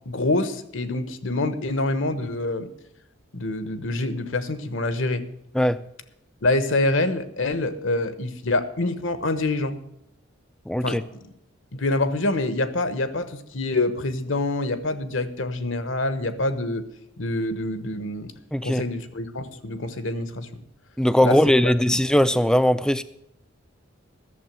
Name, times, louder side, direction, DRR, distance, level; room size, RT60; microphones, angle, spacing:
voice 1, 0.0-2.7 3.3-5.2 6.4-9.8 10.8-11.0 11.7-16.8 17.2-18.3 18.6-20.6 21.2-21.4 21.9-22.0, left 2 dB, 65° left, 12 dB, 1.1 m, -26 dB
voice 2, 10.7-11.0 18.5-18.8 21.0-23.0, equal, 5° left, 13 dB, 0.4 m, -19 dB
12.5 x 7.3 x 7.5 m, 0.80 s
head